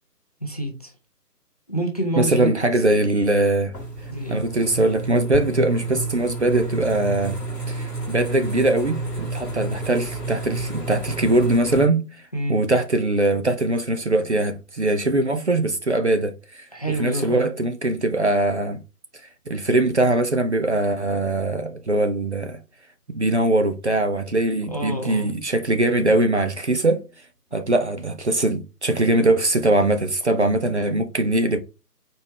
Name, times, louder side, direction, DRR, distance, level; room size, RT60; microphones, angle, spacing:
voice 1, 0.4-0.9 1.7-2.5 4.1-4.5 12.3-12.6 16.7-17.5 24.7-25.3, right 1 dB, 25° left, 0.6 m, -27 dB
voice 2, 2.2-3.7 4.3-7.4 7.7-12.0 12.5-16.7 17.0-18.8 19.5-22.6 23.1-27.0 27.5-31.6, right 2 dB, 45° right, 0.6 m, -21 dB
sound 1, 3.7-11.9, right 2 dB, 5° right, 0.9 m, -30 dB
4.3 x 3.3 x 3.1 m
figure-of-eight pair, 155°, 48 cm